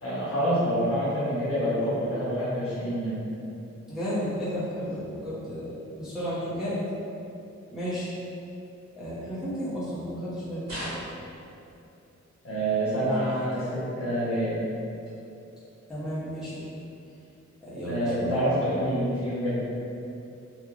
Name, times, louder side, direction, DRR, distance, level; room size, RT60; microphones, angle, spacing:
voice 1, 0.0-3.2 12.4-14.5 17.8-19.5, equal, 50° left, -10 dB, 1.2 m, -27 dB
voice 2, 3.9-6.8 7.7-8.1 8.9-10.6 15.9-16.6 17.6-18.4, equal, ahead, -12 dB, 0.6 m, -33 dB
sound 1, 10.7-11.5 13.0-13.7 15.0-15.2 16.0-16.1, equal, 65° right, 1.3 m, -39 dB
3.1 x 2.0 x 3.5 m, 2.7 s
wide cardioid pair, 150°, 29 cm